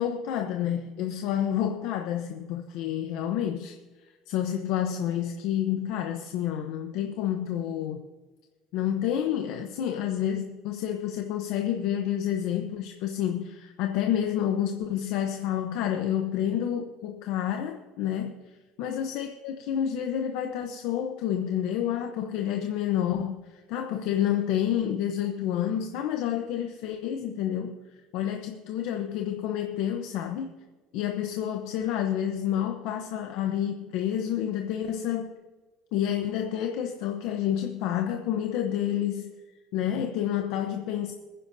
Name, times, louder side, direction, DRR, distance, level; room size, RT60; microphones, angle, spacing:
voice 1, 0.0-3.7 4.3-8.0 8.7-18.4 18.8-27.7 28.1-30.5 30.9-35.3 35.9-39.3 39.7-41.1, left 10 dB, 55° left, 5 dB, 0.8 m, -29 dB
22.5 x 10.0 x 2.7 m, 1.3 s
cardioid pair, 180°, 0 cm